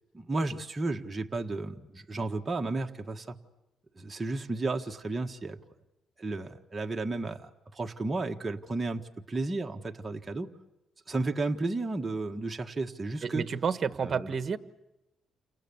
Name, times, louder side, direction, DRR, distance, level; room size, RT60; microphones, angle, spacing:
voice 1, 0.1-3.4 4.0-5.6 6.2-10.5 11.1-13.4 14.0-14.3, right 2 dB, 20° right, 3 dB, 1.6 m, -33 dB
voice 2, 13.2-14.6, right 6 dB, 45° right, 10 dB, 1.5 m, -30 dB
30.0 x 27.0 x 7.2 m, 0.96 s
cardioid pair, 90°, 0 cm